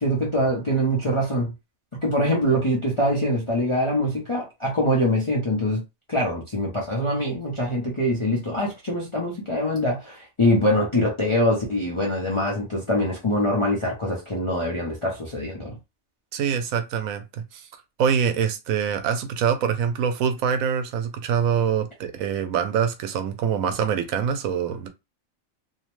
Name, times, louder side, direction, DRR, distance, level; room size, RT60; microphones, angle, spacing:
voice 1, 0.0-1.5 2.0-5.8 6.1-15.7, equal, 35° left, 0.5 m, -24 dB
voice 2, 16.3-17.7 18.0-24.9, right 7 dB, 80° right, 1.0 m, -24 dB
2.7 x 2.0 x 3.0 m
omnidirectional pair, 1.4 m